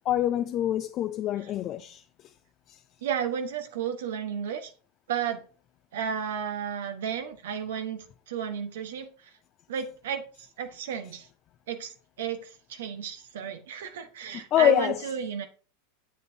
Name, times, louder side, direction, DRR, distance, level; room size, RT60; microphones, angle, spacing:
voice 1, 0.0-2.0 2.7-2.8 14.5-15.0, left 11 dB, 45° left, 0.5 m, -25 dB
voice 2, 3.0-4.7 5.1-5.5 5.9-9.1 9.7-11.3 11.7-15.5, right 8 dB, 75° right, 1.1 m, -33 dB
7.8 x 7.4 x 2.7 m
hypercardioid pair, 100°, 0 cm